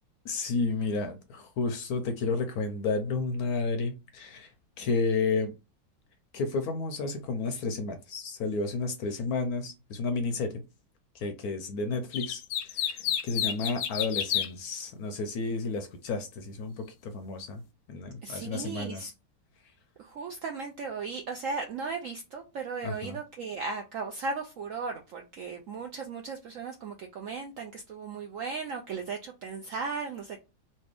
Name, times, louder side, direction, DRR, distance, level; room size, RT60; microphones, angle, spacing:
voice 1, 0.2-4.5 4.8-5.5 6.3-10.6 11.1-12.4 12.7-17.6 17.9-19.1 22.8-23.2, left 3 dB, 70° left, 0.9 m, -31 dB
sound 1, 12.1-14.5, left 10 dB, 90° left, 1.3 m, -30 dB
voice 2, 18.2-19.1 20.0-30.4, right 4 dB, 75° right, 0.7 m, -36 dB
3.2 x 2.7 x 3.3 m
omnidirectional pair, 1.9 m